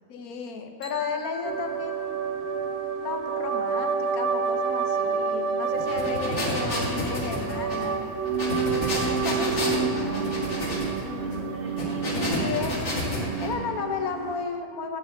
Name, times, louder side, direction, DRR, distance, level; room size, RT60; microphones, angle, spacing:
voice 1, 0.1-2.1 2.4-2.6 3.0-8.1 8.7-10.3 12.1-12.8 13.4-15.0, left 5 dB, 80° left, 5 dB, 1.3 m, -34 dB
sound 1, 0.8-6.7, equal, 30° left, 2.4 m, -47 dB
sound 2, 1.4-14.5, right 5 dB, 65° right, 0.7 m, -29 dB
sound 3, 5.7-13.5, left 1 dB, 50° left, 2.0 m, -30 dB
voice 2, 10.9-13.0, right 2 dB, 80° right, -1 dB, 1.9 m, -44 dB
11.5 x 4.3 x 8.0 m, 2.4 s
omnidirectional pair, 1.5 m